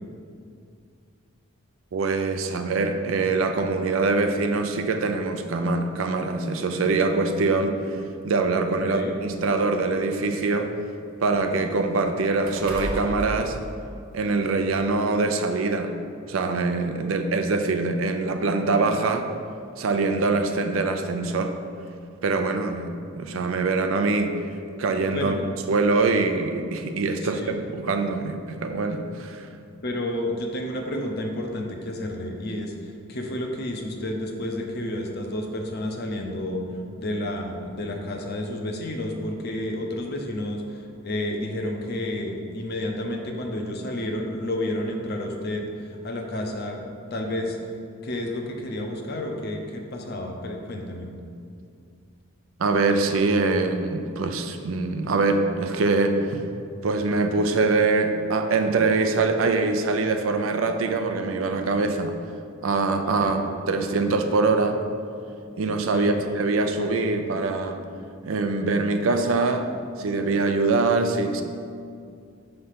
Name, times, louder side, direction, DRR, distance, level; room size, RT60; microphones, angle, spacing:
voice 1, 1.9-7.8 8.2-10.7 11.2-13.6 14.1-16.0 16.3-19.3 19.8-21.5 22.2-24.4 24.8-25.4 25.7-29.5 52.6-56.4 56.8-62.2 62.6-64.8 65.6-67.8 68.2-69.7 70.0-71.4, right 3 dB, 85° right, 6 dB, 0.5 m, -24 dB
sound 1, 5.6-5.8 6.9-7.0 7.4-7.5 8.5-10.5 10.8-14.3 14.7-14.8, right 1 dB, 45° right, 1.1 m, -37 dB
voice 2, 8.8-9.2 25.1-25.4 27.2-27.5 29.8-36.6 36.9-46.8 47.1-47.6 48.0-51.1 63.2-63.4 65.9-66.2, left 1 dB, 55° left, 2 dB, 0.7 m, -30 dB
5.5 x 3.3 x 5.7 m, 2.3 s
head